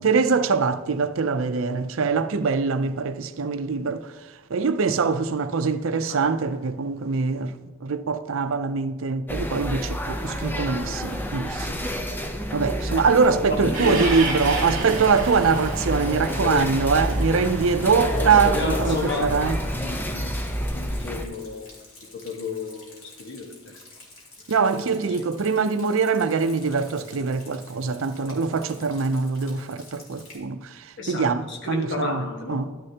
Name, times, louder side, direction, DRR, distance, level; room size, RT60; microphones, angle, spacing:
voice 1, 0.0-4.1 4.5-11.8 12.5-19.6 24.5-32.7, right 5 dB, 70° right, 0.5 m, -23 dB
sound 1, 9.3-21.2, equal, 10° left, 0.6 m, -29 dB
voice 2, 13.2-14.8 16.1-16.8 17.1-17.5 18.0-19.4 19.7-20.3 20.7-21.8 22.1-23.8 24.7-25.3 31.0-32.7, left 3 dB, 55° left, 1.4 m, -32 dB
Train, 13.7-20.0, right 3 dB, 40° right, 1.7 m, -33 dB
Rain, 14.5-30.4, left 2 dB, 75° left, 2.8 m, -49 dB
12.0 x 9.8 x 2.9 m
head